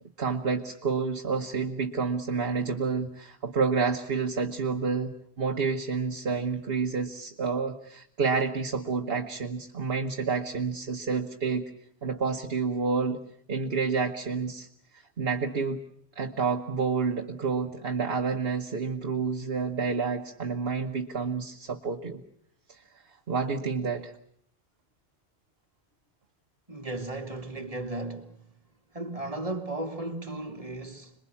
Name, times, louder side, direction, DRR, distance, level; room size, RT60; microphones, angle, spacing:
voice 1, 0.2-11.7 12.0-13.2 13.5-14.7 14.9-15.8 16.1-22.2 22.7-22.8 23.3-24.1, right 5 dB, 60° right, 1.5 m, -29 dB
voice 2, 26.7-28.4 28.9-31.1, right 2 dB, 30° right, 2.4 m, -35 dB
27.0 x 21.5 x 8.5 m
omnidirectional pair, 1.1 m